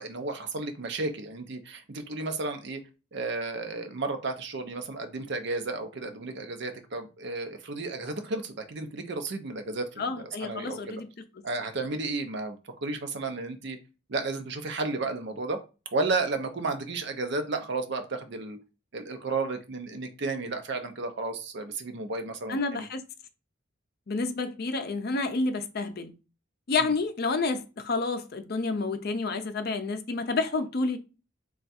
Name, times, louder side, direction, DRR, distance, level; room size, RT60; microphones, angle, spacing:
voice 1, 0.0-2.8 3.1-10.0 10.4-11.0 11.4-13.8 14.1-15.6 15.9-18.6 18.9-22.9 26.8-26.9, right 3 dB, 55° right, 0.6 m, -33 dB
voice 2, 10.0-11.1 22.5-23.0 24.1-26.1 26.7-31.0, left 3 dB, 50° left, 0.5 m, -29 dB
3.4 x 2.4 x 4.1 m
head